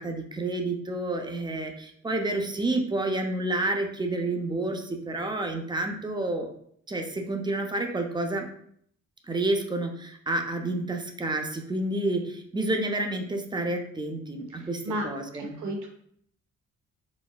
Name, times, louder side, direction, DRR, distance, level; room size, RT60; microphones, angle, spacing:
voice 1, 0.0-6.5 6.9-8.5 9.3-15.6, right 2 dB, 15° right, 4 dB, 0.5 m, -29 dB
voice 2, 14.5-15.0 15.3-15.9, right 1 dB, 75° right, 1 dB, 0.8 m, -33 dB
4.0 x 2.1 x 2.2 m, 0.65 s
cardioid pair, 80°, 30 cm